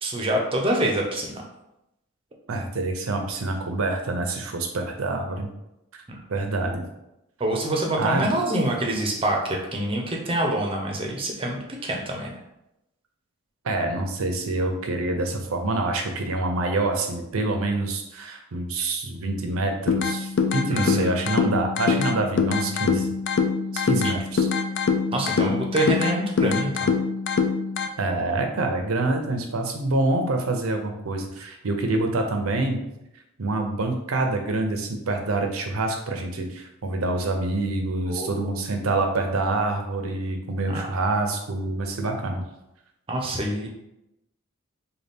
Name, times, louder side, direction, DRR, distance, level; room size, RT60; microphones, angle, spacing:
voice 1, 0.0-1.4 7.4-12.3 20.7-21.1 24.0-24.1 25.1-26.9 38.1-38.5 40.7-40.9 43.1-43.7, right 1 dB, 25° right, 0 dB, 0.6 m, -26 dB
voice 2, 2.5-5.5 6.3-6.8 8.0-8.3 13.6-23.1 23.7-24.5 28.0-32.8 33.4-42.4, right 2 dB, 80° right, 4 dB, 0.6 m, -26 dB
sound 1, 19.9-27.9, left 5 dB, 55° left, 0.3 m, -24 dB
4.0 x 2.3 x 3.5 m, 0.88 s
head